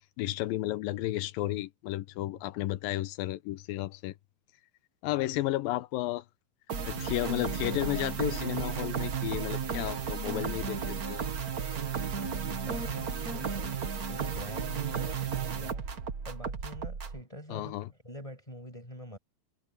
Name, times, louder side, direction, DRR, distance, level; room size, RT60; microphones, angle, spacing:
voice 1, 0.2-4.1 5.0-6.2 6.9-11.3 17.5-17.9, left 16 dB, 85° left, 2.5 m, -33 dB
sound 1, 6.7-17.2, right 6 dB, 60° right, 0.9 m, -34 dB
voice 2, 12.1-15.9 16.2-19.2, equal, 10° left, 7.0 m, -46 dB
omnidirectional pair, 4.1 m